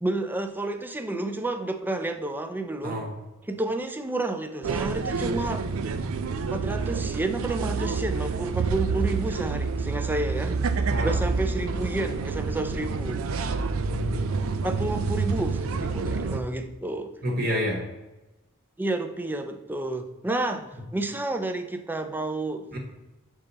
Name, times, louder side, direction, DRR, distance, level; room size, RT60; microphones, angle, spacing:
voice 1, 0.0-3.1 3.5-5.6 6.5-10.6 11.0-13.2 14.6-17.1 18.8-20.7 20.9-22.8, right 2 dB, 10° right, 7 dB, 0.4 m, -30 dB
sound 1, 4.6-16.4, right 4 dB, 80° right, 0.5 m, -28 dB
voice 2, 13.8-14.5 17.2-17.8 22.7-22.8, left 1 dB, 45° right, 0 dB, 1.1 m, -29 dB
6.7 x 3.7 x 4.0 m, 1.1 s
head